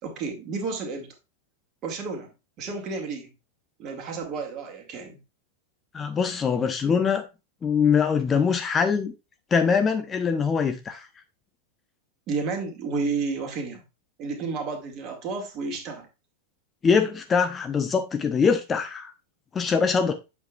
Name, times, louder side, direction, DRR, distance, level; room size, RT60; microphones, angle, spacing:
voice 1, 0.0-1.1 1.8-3.3 3.8-5.2 12.3-13.8 14.2-16.1, right 4 dB, 35° right, 2.1 m, -31 dB
voice 2, 5.9-7.3 7.6-9.1 9.5-11.1 16.8-19.1 19.5-20.1, left 6 dB, 20° left, 0.8 m, -23 dB
8.1 x 6.9 x 2.4 m
figure-of-eight pair, 90°, 0 cm